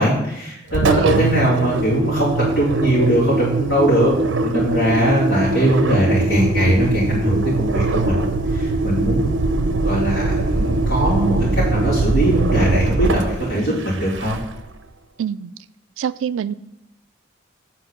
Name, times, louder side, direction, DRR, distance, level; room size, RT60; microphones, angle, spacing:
voice 1, 0.0-4.1 4.4-8.2 8.5-14.4, equal, 65° left, -11 dB, 3.0 m, -20 dB
Engine, 0.7-14.7, right 3 dB, 70° right, 0.7 m, -21 dB
voice 2, 0.8-1.3 15.2-15.5 16.0-16.5, right 8 dB, 90° right, 16 dB, 0.3 m, -25 dB
8.6 x 4.5 x 6.5 m, 0.85 s
head